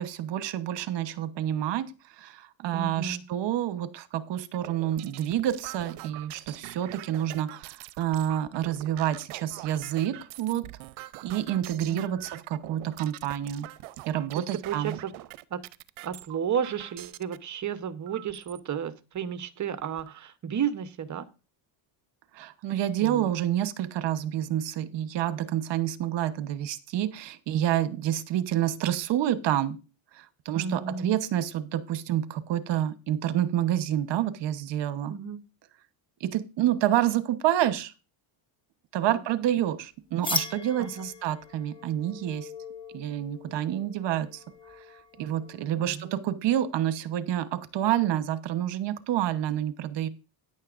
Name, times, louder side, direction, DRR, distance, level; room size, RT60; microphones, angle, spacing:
voice 1, 0.0-1.9 2.2-10.7 11.2-13.7 14.1-15.0 22.3-29.8 30.1-35.1 36.2-37.9 38.9-42.5 42.9-44.4 45.2-50.1, right 11 dB, 60° right, 1.1 m, -28 dB
voice 2, 2.7-3.2 11.9-12.2 14.4-15.1 15.5-15.6 16.0-21.3 23.0-23.3 30.5-31.1 35.1-35.4 39.0-39.2 40.8-41.1 45.8-46.0, right 7 dB, 35° right, 1.0 m, -33 dB
sound 1, 4.5-17.4 18.1-18.6 19.2-19.3 19.6-20.2, right 17 dB, 75° right, 0.7 m, -45 dB
sound 2, 40.2-45.8, left 3 dB, 10° left, 1.2 m, -38 dB
13.0 x 9.9 x 2.5 m
cardioid pair, 115°, 49 cm